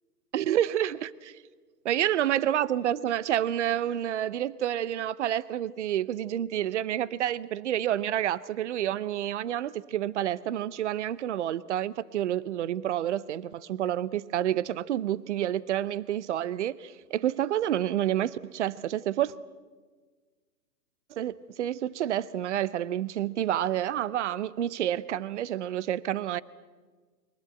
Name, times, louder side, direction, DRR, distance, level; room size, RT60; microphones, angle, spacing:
voice 1, 0.3-1.4 1.8-19.3 21.1-26.4, right 11 dB, 45° right, 0.7 m, -29 dB
22.5 x 20.0 x 8.0 m
hypercardioid pair, 150°, 49 cm